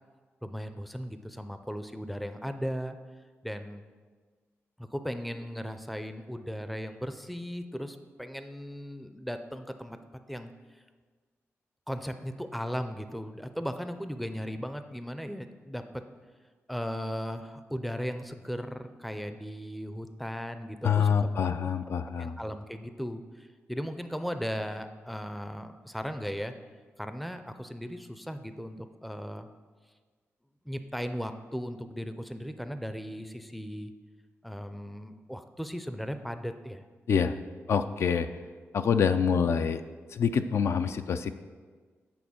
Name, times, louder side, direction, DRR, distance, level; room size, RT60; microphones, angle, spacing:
voice 1, 0.4-3.0 3.4-3.8 4.8-10.0 10.3-10.5 11.9-16.0 16.7-21.7 22.2-26.5 27.0-29.5 30.7-33.9 34.4-36.9, equal, ahead, 9 dB, 0.4 m, -37 dB
voice 2, 20.8-22.4 37.1-37.4 37.7-38.3 38.7-39.8 40.1-41.3, left 6 dB, 65° left, 9 dB, 0.4 m, -26 dB
8.6 x 4.2 x 6.9 m, 1.5 s
wide cardioid pair, 120°, 5 cm